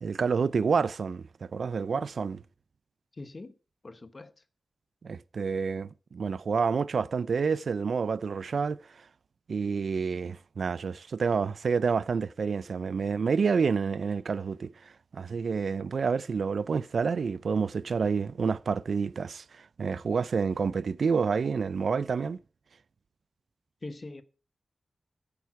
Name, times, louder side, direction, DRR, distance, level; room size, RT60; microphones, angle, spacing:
voice 1, 0.0-2.4 5.0-8.8 9.5-22.4, right 5 dB, 65° right, 0.4 m, -28 dB
voice 2, 3.2-3.5 3.8-4.3 23.8-24.2, left 2 dB, 30° left, 1.0 m, -42 dB
11.0 x 8.3 x 5.9 m
wide cardioid pair, 170°, 0 cm